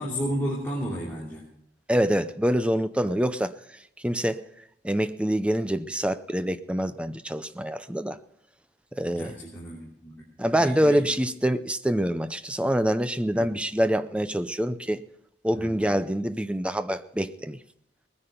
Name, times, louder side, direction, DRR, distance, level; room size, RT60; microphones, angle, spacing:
voice 1, 0.0-1.5 9.0-10.2 10.6-11.0 13.3-13.5 15.5-15.9, equal, 10° left, 3.1 m, -33 dB
voice 2, 1.9-3.5 4.0-4.5 4.8-8.2 9.0-9.3 10.4-15.0 15.4-17.6, equal, 5° right, 0.5 m, -25 dB
20.0 x 9.9 x 5.2 m
head